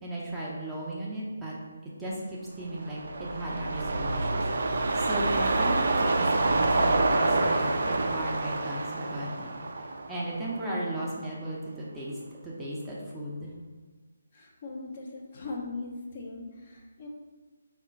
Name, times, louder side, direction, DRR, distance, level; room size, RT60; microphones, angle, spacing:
voice 1, 0.0-1.5 1.8-4.4 4.9-9.5 10.1-12.1 12.4-13.5, right 1 dB, 10° right, -6 dB, 0.6 m, -36 dB
sound 1, 2.7-11.1 11.5-11.6, right 2 dB, 55° right, 0.4 m, -27 dB
voice 2, 14.3-17.1, left 3 dB, 40° left, -1 dB, 0.7 m, -39 dB
3.6 x 2.4 x 4.4 m, 1.3 s
figure-of-eight pair, 145°, 0 cm